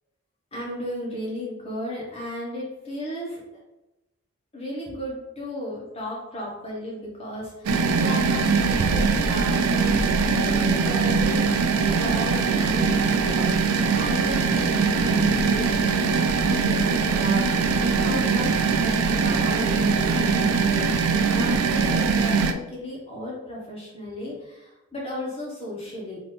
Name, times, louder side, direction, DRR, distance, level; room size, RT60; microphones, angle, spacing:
voice 1, 0.5-3.4 4.5-11.7 12.0-13.5 13.9-15.8 16.5-26.2, left 1 dB, 25° left, -4 dB, 1.2 m, -35 dB
sound 1, 7.7-22.5, right 4 dB, 80° right, 0.4 m, -22 dB
3.4 x 2.9 x 4.2 m, 0.96 s
head